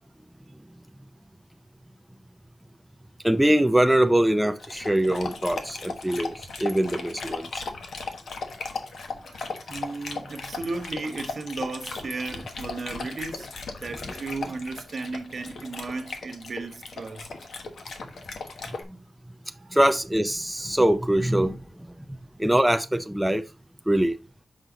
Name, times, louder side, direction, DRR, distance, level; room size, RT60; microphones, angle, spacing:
voice 1, 3.2-7.6 18.9-19.0 19.7-22.0 22.4-23.4 23.9-24.2, right 1 dB, 5° right, 0.4 m, -23 dB
Dog, 4.6-18.8, left 4 dB, 80° left, 1.2 m, -37 dB
voice 2, 9.2-13.5 13.8-17.5 18.4-18.5 19.5-19.7, right 3 dB, 50° right, 1.0 m, -35 dB
6.3 x 5.5 x 3.8 m
wide cardioid pair, 130°, 0 cm